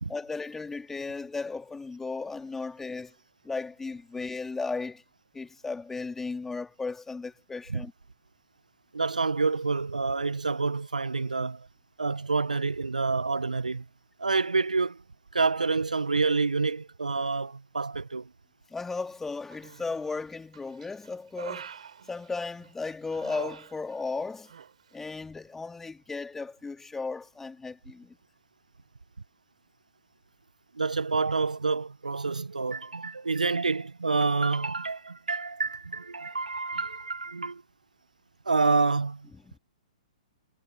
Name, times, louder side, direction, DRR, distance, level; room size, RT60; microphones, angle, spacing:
voice 1, 0.1-3.1 3.4-5.0 5.3-7.9 18.7-21.7 22.1-24.5 24.9-28.2 39.5-39.6, left 4 dB, 10° left, 3.5 m, -35 dB
voice 2, 8.9-11.7 12.0-13.8 14.2-15.0 15.3-18.3 30.7-37.6 38.4-39.3, right 4 dB, 80° right, 1.5 m, -28 dB
Human voice, 19.5-20.1 20.5-22.7 23.1-24.2 24.4-24.7, right 7 dB, 65° right, 7.6 m, -44 dB
figure-of-eight pair, 115°, 4 cm